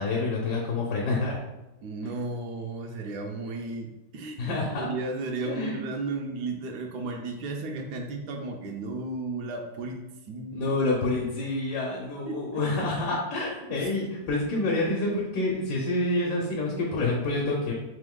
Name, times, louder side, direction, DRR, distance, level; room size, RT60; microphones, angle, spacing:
voice 1, 0.0-1.4 4.4-4.9 5.4-5.8 10.5-17.7, left 2 dB, 80° left, -2 dB, 1.3 m, -28 dB
voice 2, 1.8-10.7 12.3-12.6 13.7-14.1, right 3 dB, 80° right, 2 dB, 1.1 m, -34 dB
3.5 x 3.0 x 3.6 m, 0.99 s
omnidirectional pair, 1.8 m